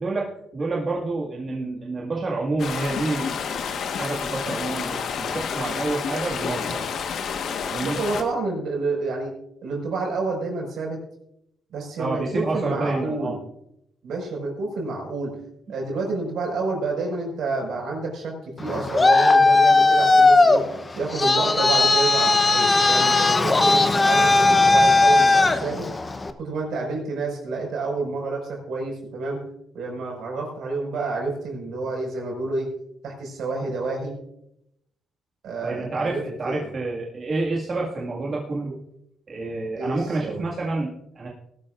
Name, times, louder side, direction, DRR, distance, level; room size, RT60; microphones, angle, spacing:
voice 1, 0.0-3.4 3.7-6.8 7.6-8.0 12.0-13.4 35.6-38.8 39.3-41.3, right 3 dB, 40° right, -4 dB, 2.0 m, -28 dB
sound 1, 2.6-8.2, left 6 dB, 70° left, 1.4 m, -29 dB
voice 2, 7.7-9.3 9.6-11.0 11.7-13.4 14.0-15.4 15.7-20.6 21.0-25.9 26.4-29.4 29.7-32.7 33.0-34.2 35.4-36.7 39.7-40.4, right 3 dB, 75° right, 0 dB, 5.3 m, -29 dB
Traffic noise roadway noise, 18.6-26.3, left 3 dB, 25° left, 0.9 m, -17 dB
19.5 x 12.5 x 2.5 m, 0.79 s
cardioid pair, 110°, 0 cm